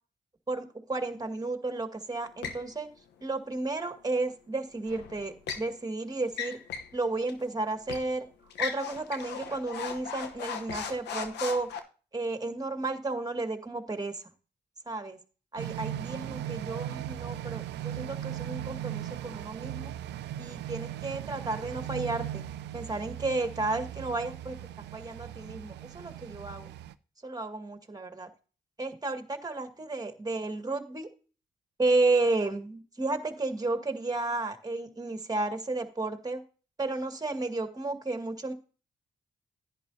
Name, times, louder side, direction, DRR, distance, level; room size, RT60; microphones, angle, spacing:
voice 1, 0.5-2.9 3.2-6.6 6.9-8.3 8.6-11.7 12.1-14.2 14.9-15.2 15.5-19.9 20.4-22.4 22.7-24.6 24.9-26.7 27.2-28.3 28.8-31.1 31.8-36.4 36.8-38.5, right 2 dB, 20° right, 6 dB, 2.1 m, -32 dB
sound 1, 2.4-2.7 4.9-5.7 6.3-6.9 7.3-7.4 7.9-8.1 8.5-11.8, left 7 dB, 85° left, 1.0 m, -37 dB
sound 2, 15.6-26.9, right 12 dB, 80° right, 0.5 m, -38 dB
11.0 x 10.0 x 2.7 m, 0.37 s
supercardioid pair, 45°, 17 cm